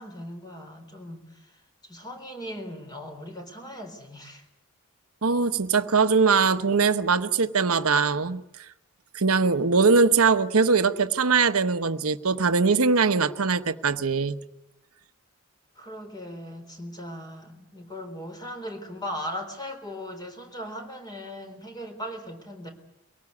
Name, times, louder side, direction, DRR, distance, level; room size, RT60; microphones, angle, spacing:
voice 1, 0.0-4.5 15.8-22.7, equal, 20° left, 6 dB, 3.9 m, -38 dB
voice 2, 5.2-8.4 9.1-14.4, right 4 dB, 80° right, 11 dB, 1.0 m, -21 dB
23.5 x 18.0 x 9.7 m, 0.90 s
head